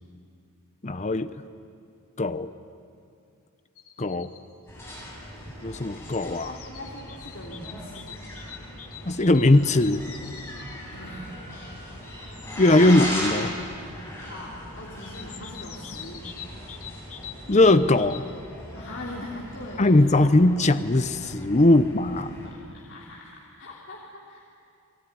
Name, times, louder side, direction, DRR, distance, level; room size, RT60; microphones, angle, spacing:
voice 1, 0.8-1.3 2.2-2.5 4.0-4.3 5.6-6.5 9.1-10.0 12.6-13.5 17.5-18.2 19.8-22.3, left 2 dB, 30° left, 11 dB, 0.7 m, -20 dB
sound 1, 3.8-4.4 5.5-10.8 12.1-13.7 15.0-18.4, left 9 dB, 75° left, 2.0 m, -45 dB
sound 2, 4.7-22.5, equal, 10° left, 7.7 m, -39 dB
voice 2, 6.3-8.2 10.9-11.3 14.2-16.3 18.7-20.2 22.1-24.4, left 1 dB, 55° left, -3 dB, 3.0 m, -41 dB
29.5 x 20.5 x 9.6 m, 2.4 s
head